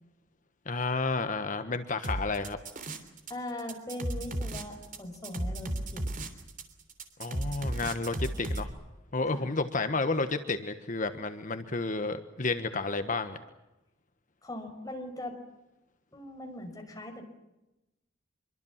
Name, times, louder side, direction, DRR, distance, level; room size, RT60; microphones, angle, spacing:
voice 1, 0.7-2.6 7.2-8.7 9.1-13.4, left 3 dB, 40° left, 9 dB, 1.4 m, -31 dB
sound 1, 2.0-3.3 3.6-8.7, right 1 dB, 45° right, 3.2 m, -34 dB
voice 2, 3.3-6.1 9.3-9.5 14.4-15.4 16.1-17.2, left 1 dB, 20° left, 3 dB, 5.6 m, -40 dB
26.0 x 23.5 x 7.4 m, 0.96 s
head